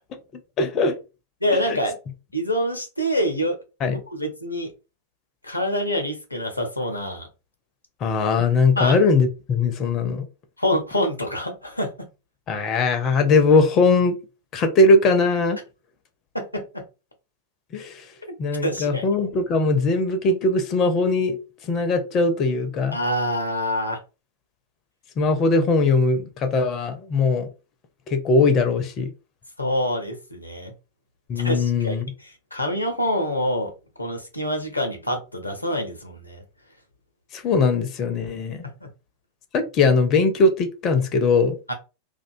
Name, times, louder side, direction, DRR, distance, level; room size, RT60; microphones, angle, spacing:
voice 1, 0.6-0.9 1.7-1.8 3.8-4.0 8.0-10.3 12.5-14.2 14.5-15.6 17.7-18.1 18.4-21.4 21.6-23.0 25.2-27.5 28.1-29.1 31.3-32.1 37.3-38.6 39.5-41.6, left 3 dB, 35° left, 0.5 m, -20 dB
voice 2, 1.4-2.0 2.3-3.6 3.9-4.7 5.4-7.3 8.8-9.0 10.6-12.1 16.3-16.8 18.6-19.0 22.9-24.0 29.6-30.7 31.4-33.7 34.0-36.4 38.8-38.9 41.7-41.8, equal, 85° left, 0.5 m, -26 dB
2.4 x 2.2 x 2.5 m
figure-of-eight pair, 90°, 0 cm